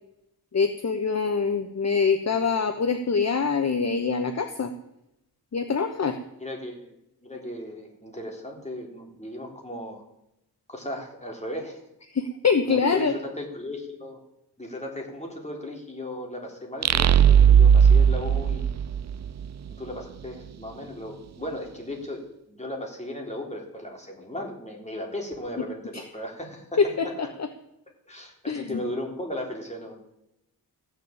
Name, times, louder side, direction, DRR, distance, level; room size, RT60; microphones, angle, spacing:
voice 1, 0.5-4.7 5.5-6.2 12.1-13.1 26.8-27.3 28.5-28.6, left 5 dB, 45° left, 7 dB, 1.1 m, -24 dB
voice 2, 6.4-7.0 7.2-10.0 10.7-11.8 12.7-14.2 14.6-18.7 19.7-27.1 28.1-29.9, left 1 dB, 15° left, 0 dB, 3.7 m, -36 dB
sound 1, 16.8-19.5, right 8 dB, 45° right, 0.5 m, -17 dB
14.5 x 6.9 x 8.8 m, 0.85 s
cardioid pair, 75°, 39 cm